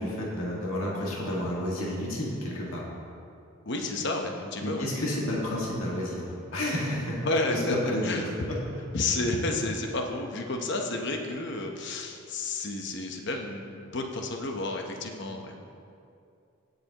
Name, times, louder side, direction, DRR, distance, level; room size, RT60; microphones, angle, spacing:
voice 1, 0.0-2.9 4.6-7.2 7.5-8.6, left 1 dB, 75° left, -4 dB, 1.9 m, -31 dB
voice 2, 3.6-4.9 7.2-7.7 8.0-8.5 8.9-15.6, left 2 dB, 55° left, 3 dB, 0.9 m, -31 dB
19.0 x 6.8 x 3.0 m, 2.5 s
head